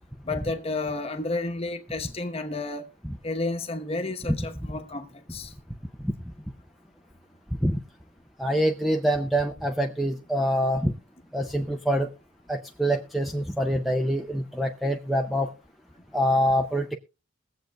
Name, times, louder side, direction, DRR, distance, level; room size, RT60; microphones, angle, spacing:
voice 1, 0.2-2.9 3.2-5.1 5.3-5.5, left 2 dB, 30° left, 1.0 m, -31 dB
voice 2, 8.4-10.9 11.3-12.1 12.5-15.5 16.1-17.0, equal, ahead, 0.4 m, -25 dB
21.5 x 7.7 x 2.3 m
head